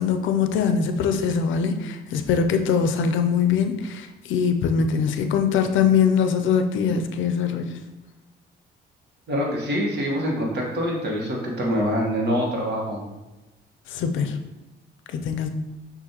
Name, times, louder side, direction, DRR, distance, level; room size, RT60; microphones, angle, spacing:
voice 1, 0.0-7.7 13.9-14.3 15.1-15.5, left 6 dB, 75° left, 7 dB, 0.5 m, -22 dB
voice 2, 9.3-13.0, equal, 60° right, -2 dB, 1.4 m, -25 dB
6.3 x 2.6 x 2.9 m, 1.0 s
cardioid pair, 90°, 20 cm